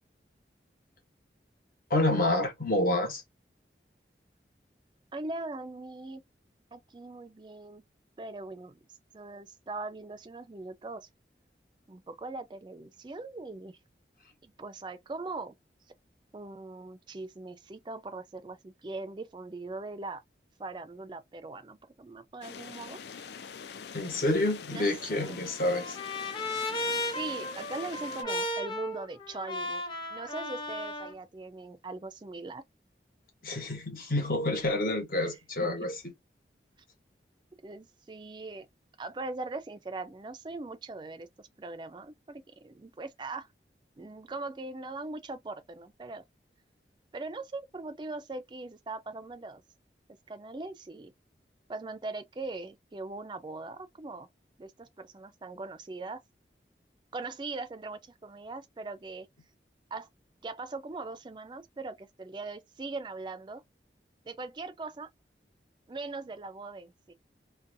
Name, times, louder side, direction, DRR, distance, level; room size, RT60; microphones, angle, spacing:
voice 1, 1.9-3.2 23.9-26.0 33.4-36.0, left 1 dB, 50° left, 1.0 m, -28 dB
voice 2, 5.1-6.2 6.7-7.8 8.2-8.8 9.1-11.1 11.9-13.8 14.4-15.5 16.3-20.2 20.6-23.0 24.7-25.4 27.0-29.8 30.1-32.6 37.6-38.7 39.0-43.5 44.0-46.2 47.1-49.6 50.3-51.1 51.7-54.3 54.6-56.2 57.1-59.3 59.9-60.1 60.4-63.6 64.2-65.1 65.9-67.1, right 3 dB, 25° right, 0.4 m, -40 dB
sound 1, 22.4-28.2, left 6 dB, 75° left, 0.4 m, -44 dB
Trumpet, 24.8-31.1, left 1 dB, 25° left, 0.7 m, -35 dB
2.6 x 2.2 x 2.6 m
head